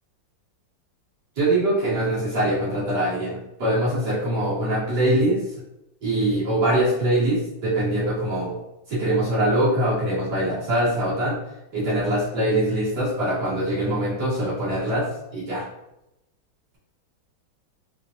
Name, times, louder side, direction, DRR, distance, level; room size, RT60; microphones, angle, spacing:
voice 1, 1.4-5.4 6.0-8.6 8.9-11.4 11.7-15.1 15.3-15.6, right 1 dB, 50° right, -9 dB, 1.9 m, -23 dB
4.5 x 3.3 x 2.5 m, 0.88 s
omnidirectional pair, 2.3 m